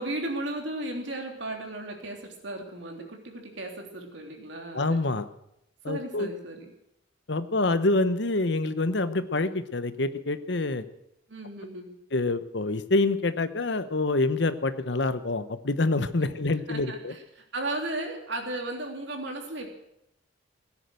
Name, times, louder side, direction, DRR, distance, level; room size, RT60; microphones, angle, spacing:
voice 1, 0.0-5.0 5.9-6.7 11.3-11.9 16.2-16.3 16.7-19.7, right 2 dB, 75° right, 2 dB, 3.3 m, -35 dB
voice 2, 4.7-5.2 5.8-6.3 7.3-10.8 12.1-17.1, left 2 dB, 65° left, 12 dB, 1.0 m, -26 dB
17.0 x 10.0 x 7.8 m, 0.80 s
head